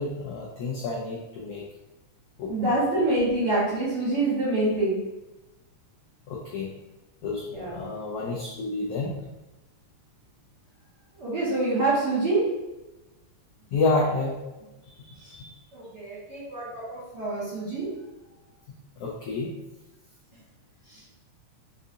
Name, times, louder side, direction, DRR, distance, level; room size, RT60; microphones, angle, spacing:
voice 1, 0.0-1.6 2.4-2.7 6.3-6.7 7.2-9.1 13.7-14.4 14.8-15.5 19.0-19.5, left 3 dB, 85° left, -3 dB, 1.3 m, -29 dB
voice 2, 2.5-5.0 7.5-7.8 11.2-12.4 15.7-17.9, right 2 dB, 55° right, -9 dB, 1.3 m, -26 dB
6.5 x 2.4 x 2.6 m, 1.0 s
omnidirectional pair, 3.3 m